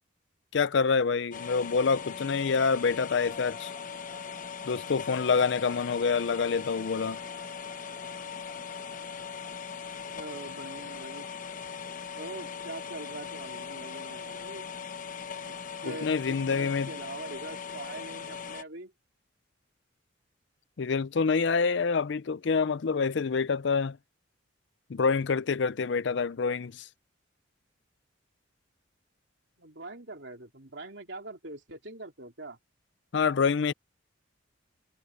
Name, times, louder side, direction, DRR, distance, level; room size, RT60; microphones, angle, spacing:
voice 1, 0.5-3.7 4.6-7.2 15.9-16.9 20.8-24.0 24.9-26.9 33.1-33.7, left 5 dB, 60° left, 0.5 m, -27 dB
sound 1, 1.3-18.6, left 6 dB, 40° left, 0.9 m, -40 dB
Bowed string instrument, 3.1-10.3, right 1 dB, 5° right, 7.4 m, -58 dB
voice 2, 10.0-11.3 12.1-14.7 15.4-15.5 15.8-18.9 29.6-32.6, right 2 dB, 60° right, 3.1 m, -43 dB
head